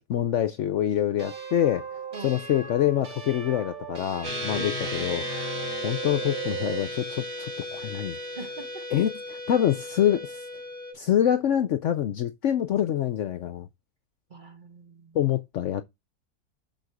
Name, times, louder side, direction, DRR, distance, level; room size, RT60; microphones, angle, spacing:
voice 1, 0.0-1.8 2.2-5.2 5.8-8.2 8.9-10.4 10.9-13.7 15.1-15.8, left 11 dB, 65° left, 0.8 m, -26 dB
sound 1, 1.2-6.9, right 6 dB, 65° right, 2.0 m, -38 dB
sound 2, 4.2-10.9, left 1 dB, 90° right, 3.9 m, -35 dB
voice 2, 4.6-5.2 8.3-8.9 14.3-15.2, right 3 dB, 35° right, 1.2 m, -42 dB
6.5 x 6.4 x 4.7 m
omnidirectional pair, 1.6 m